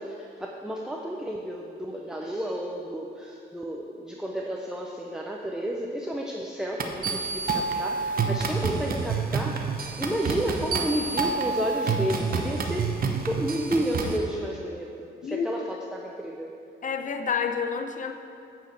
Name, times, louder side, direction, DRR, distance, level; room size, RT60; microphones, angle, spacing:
voice 1, 0.0-9.7 10.0-12.9 13.2-16.5, right 1 dB, 5° right, -1 dB, 0.7 m, -31 dB
sound 1, 6.8-14.2, right 4 dB, 45° right, 1.0 m, -28 dB
voice 2, 16.8-18.1, left 6 dB, 40° left, 5 dB, 0.8 m, -29 dB
8.6 x 4.8 x 7.6 m, 2.5 s
cardioid pair, 90°, 20 cm